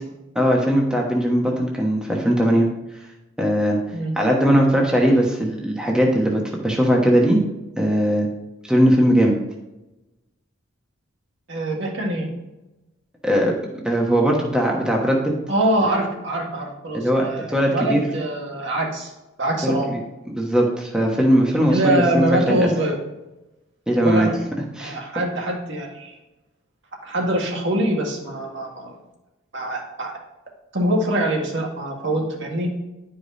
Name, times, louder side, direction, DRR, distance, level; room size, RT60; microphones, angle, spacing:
voice 1, 0.3-2.7 3.4-3.8 4.2-7.4 7.8-8.3 8.7-9.4 13.2-13.5 13.8-15.3 16.9-17.2 17.5-18.0 19.6-20.0 20.4-22.7 23.9-24.3 24.8-25.0, equal, 5° right, -2 dB, 1.1 m, -19 dB
voice 2, 11.5-12.3 15.5-19.1 19.4-19.9 21.7-23.0 23.9-24.3 24.8-26.1 27.0-28.9 29.5-30.1 30.7-32.7, right 1 dB, 60° right, -1 dB, 1.9 m, -24 dB
11.0 x 5.1 x 4.2 m, 0.99 s
head